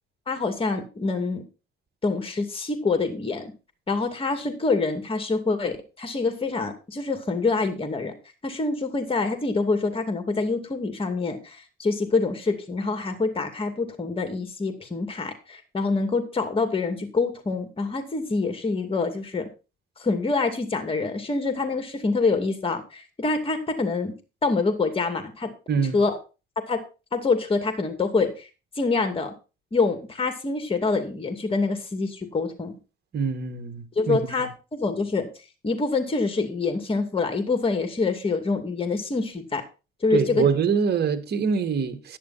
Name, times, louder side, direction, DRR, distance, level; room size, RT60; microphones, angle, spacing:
voice 1, 0.3-1.4 2.0-3.5 3.9-8.1 8.4-19.5 20.0-24.1 24.4-25.5 25.9-26.2 26.7-26.8 27.1-28.5 28.8-29.3 29.7-32.7 34.0-35.3 35.6-39.6 40.0-40.5, left 3 dB, 25° left, 2.4 m, -26 dB
voice 2, 33.1-34.5 40.1-42.2, right 6 dB, 55° right, 2.1 m, -25 dB
11.5 x 10.5 x 4.3 m
cardioid pair, 90°, 20 cm